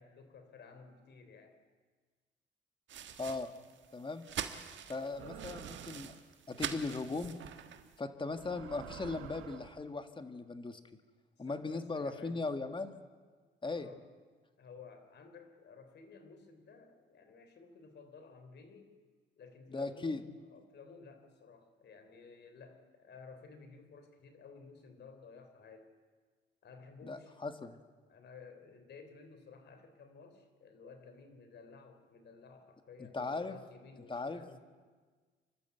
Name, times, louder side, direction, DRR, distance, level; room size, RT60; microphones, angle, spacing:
voice 1, 0.0-1.5 5.0-5.8 11.4-12.4 13.7-14.1 14.6-19.0 19.4-25.9 26.6-27.3 28.1-34.6, left 4 dB, 60° left, 8 dB, 3.5 m, -54 dB
sound 1, 2.9-8.0, right 9 dB, 70° right, 1.5 m, -44 dB
voice 2, 3.2-3.5 3.9-4.2 4.9-6.1 6.5-7.4 8.0-10.8 11.4-13.0 13.6-13.9 19.7-20.2 27.0-27.8 33.1-33.6 34.1-34.6, left 3 dB, 25° left, 8 dB, 1.7 m, -38 dB
sound 2, 5.2-6.2 7.2-7.5 8.3-9.8, right 10 dB, 90° right, 1.3 m, -49 dB
29.0 x 12.5 x 8.2 m, 1.5 s
cardioid pair, 90°, 20 cm